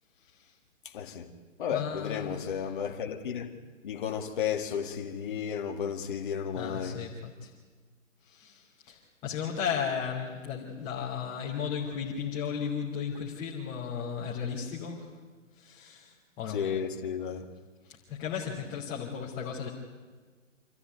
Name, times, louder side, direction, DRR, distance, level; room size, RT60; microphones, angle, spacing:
voice 1, 0.2-0.5 1.7-2.7 6.5-7.5 8.2-15.2 15.5-16.6 17.8-19.7, left 7 dB, 20° left, 2.8 m, -35 dB
voice 2, 0.9-1.3 1.6-3.5 3.8-7.0 16.5-17.4, left 8 dB, 40° left, 2.1 m, -33 dB
27.0 x 14.5 x 9.4 m
hypercardioid pair, 145°, 39 cm